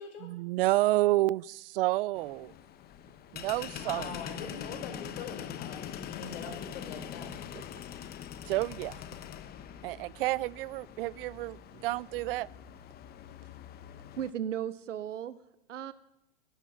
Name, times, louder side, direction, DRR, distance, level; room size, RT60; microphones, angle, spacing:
voice 1, 0.2-2.5 3.3-4.2 8.4-9.0 9.8-12.5, right 18 dB, 50° right, 25 dB, 0.4 m, -30 dB
sound 1, 2.1-14.3, left 9 dB, 25° left, 1.0 m, -43 dB
voice 2, 3.7-5.8 6.1-7.3, left 5 dB, 55° left, 5 dB, 5.3 m, -43 dB
voice 3, 14.2-15.4 15.7-15.9, right 9 dB, 85° right, 16 dB, 0.8 m, -36 dB
17.5 x 11.5 x 6.2 m, 0.88 s
hypercardioid pair, 115°, 36 cm